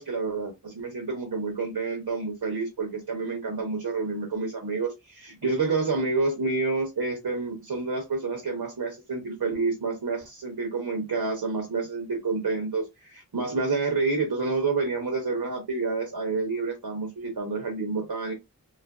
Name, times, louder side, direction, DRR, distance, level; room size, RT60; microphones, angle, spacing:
voice 1, 0.0-18.3, right 3 dB, 90° right, 0.8 m, -29 dB
2.8 x 2.4 x 2.3 m
wide cardioid pair, 55°, 36 cm